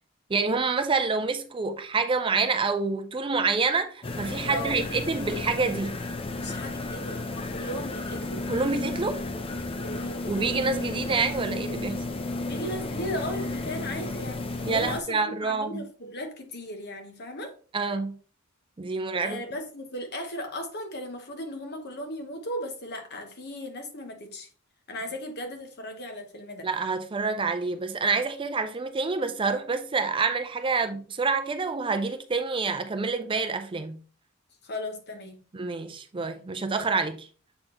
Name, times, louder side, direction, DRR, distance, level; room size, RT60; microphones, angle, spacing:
voice 1, 0.3-6.0 8.5-9.2 10.3-12.0 14.6-15.8 17.7-18.2 18.8-19.4 26.6-34.0 35.5-37.3, right 4 dB, 25° right, 0.4 m, -27 dB
sound 1, 4.0-15.0, left 2 dB, 25° left, 0.5 m, -33 dB
voice 2, 4.5-4.8 6.4-8.5 9.8-10.5 12.4-14.4 14.7-17.6 19.2-24.5 24.9-26.7 34.6-35.4, left 1 dB, 50° left, 1.2 m, -36 dB
7.7 x 4.1 x 2.9 m
head